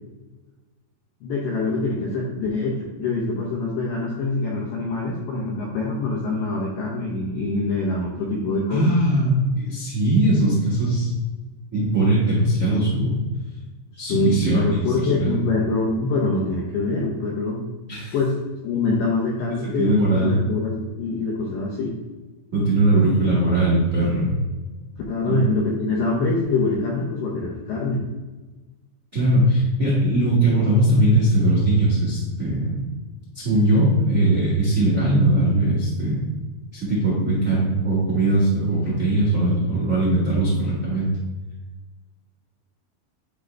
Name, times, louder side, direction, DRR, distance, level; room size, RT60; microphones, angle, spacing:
voice 1, 1.2-8.9 13.9-17.6 18.1-18.3 18.6-22.0 25.1-28.0, left 3 dB, 80° left, -2 dB, 1.9 m, -24 dB
voice 2, 8.7-11.1 11.7-13.1 14.0-14.8 15.1-15.4 17.9-18.1 19.6-20.4 22.5-24.3 25.2-25.4 29.1-32.8 33.3-36.2 36.7-41.1, right 1 dB, 60° right, -7 dB, 0.8 m, -20 dB
9.9 x 3.7 x 3.3 m, 1.2 s
omnidirectional pair, 4.9 m